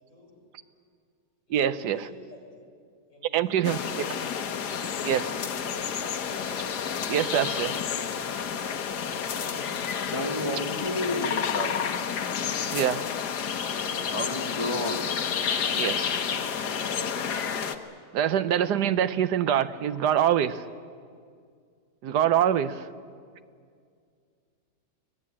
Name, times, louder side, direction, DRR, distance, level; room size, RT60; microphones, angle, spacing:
voice 1, 0.1-0.7 1.5-2.5 3.1-3.9 4.2-4.3 5.5-6.5, left 2 dB, 50° left, -2 dB, 8.5 m, -50 dB
voice 2, 1.5-2.1 3.3-3.8 5.0-5.4 7.1-7.8 12.7-13.1 15.7-16.2 18.1-20.7 22.0-22.9, right 10 dB, 75° right, 13 dB, 1.3 m, -25 dB
sound 1, 3.6-17.8, left 7 dB, 75° left, 1.6 m, -30 dB
voice 3, 10.1-11.9 14.1-15.1, left 1 dB, 20° left, 3 dB, 1.6 m, -31 dB
25.0 x 19.0 x 8.6 m, 2.2 s
omnidirectional pair, 1.8 m